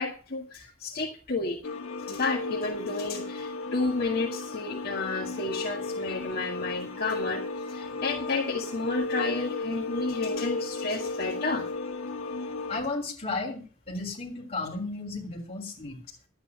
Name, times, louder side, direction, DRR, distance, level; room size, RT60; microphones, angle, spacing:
voice 1, 0.0-1.6 2.1-7.4 7.7-11.7, left 3 dB, 50° left, -1 dB, 1.8 m, -31 dB
sound 1, 1.6-12.8, left 3 dB, 90° left, 1.7 m, -34 dB
voice 2, 12.7-16.0, left 3 dB, 30° left, -1 dB, 3.4 m, -34 dB
12.5 x 8.8 x 6.1 m, 0.39 s
head